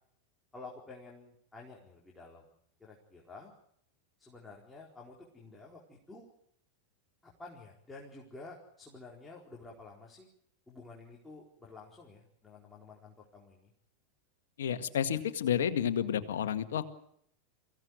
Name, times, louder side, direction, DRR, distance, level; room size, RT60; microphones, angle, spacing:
voice 1, 0.5-2.5 2.8-3.5 4.2-6.3 7.2-10.3 10.7-13.7, left 3 dB, 10° left, -3 dB, 4.5 m, -51 dB
voice 2, 14.6-16.8, left 9 dB, 75° left, 9 dB, 1.9 m, -30 dB
23.5 x 16.5 x 9.6 m, 0.71 s
hypercardioid pair, 100°, 0 cm